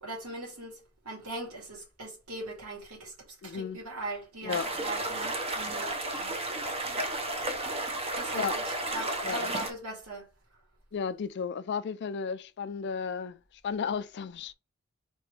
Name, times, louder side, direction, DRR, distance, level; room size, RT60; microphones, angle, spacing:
voice 1, 0.0-3.1 3.4-6.4 6.9-7.2 8.2-10.3, right 2 dB, 80° right, 2.2 m, -40 dB
voice 2, 3.4-3.8 4.4-4.7 8.3-8.6 9.2-9.4 10.9-13.4 13.6-14.5, left 6 dB, 50° left, 0.4 m, -33 dB
sound 1, 4.5-9.7, right 2 dB, 25° right, 0.7 m, -32 dB
4.6 x 3.0 x 3.2 m
head